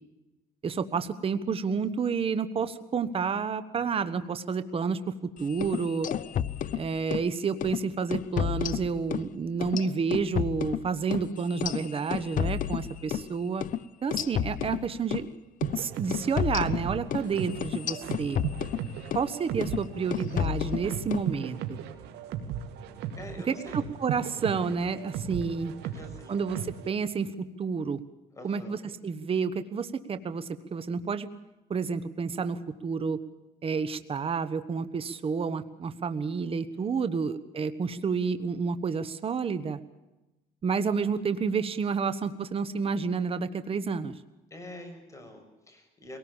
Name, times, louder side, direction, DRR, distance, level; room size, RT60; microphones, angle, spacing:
voice 1, 0.6-6.1 6.7-13.6 14.0-15.3 15.7-18.4 19.1-21.8 23.5-25.7 26.3-26.6 26.9-28.0 28.4-28.8 29.0-31.3 31.7-33.2 33.6-39.8 40.6-44.1, right 5 dB, 35° right, 11 dB, 1.2 m, -30 dB
sound 1, 5.5-7.3 7.6-7.8 8.1-9.3 9.6-13.3 13.6-13.8 14.1-15.3 15.6-15.8 16.1-19.3 19.6-19.8 20.1-21.3, left 9 dB, 55° left, 0.8 m, -31 dB
sound 2, 15.6-26.9, right 9 dB, 85° right, 2.4 m, -37 dB
voice 2, 23.1-23.8 25.1-25.2 25.8-26.4 28.3-28.8 36.7-37.3 44.5-46.2, left 1 dB, 20° left, 4 dB, 6.6 m, -46 dB
22.5 x 18.5 x 7.2 m, 1.0 s
cardioid pair, 110°, 17 cm